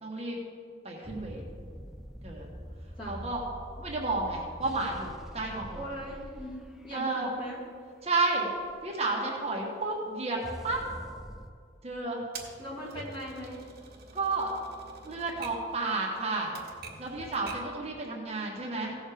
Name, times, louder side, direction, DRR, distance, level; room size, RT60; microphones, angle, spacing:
voice 1, 0.0-0.4 0.8-1.5 2.2-2.5 2.8-3.4 3.8-5.8 6.9-7.3 8.0-8.5 8.8-10.8 11.8-12.2 14.1-14.7 15.0-16.6 17.0-19.0, right 3 dB, 35° right, -2 dB, 1.4 m, -32 dB
sound 1, 1.0-8.8 10.4-11.5, equal, ahead, 0.5 m, -45 dB
voice 2, 5.7-6.6 6.8-7.6 12.6-13.7, right 1 dB, 25° left, -6 dB, 2.8 m, -39 dB
Typewriter, 12.3-17.8, right 4 dB, 55° right, 1.7 m, -47 dB
16.0 x 6.4 x 5.0 m, 2.2 s
head